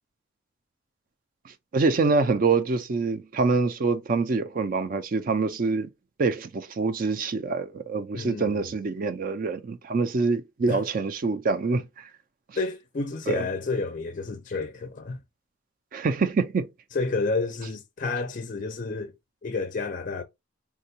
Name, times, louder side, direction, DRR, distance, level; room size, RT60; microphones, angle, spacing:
voice 1, 1.4-5.9 6.2-12.1 13.3-13.4 15.9-16.7, right 4 dB, 45° right, 0.4 m, -25 dB
voice 2, 8.1-8.7 10.7-10.8 12.6-15.2 16.9-19.1 19.4-20.2, left 3 dB, 40° left, 0.4 m, -30 dB
3.6 x 2.2 x 2.7 m
head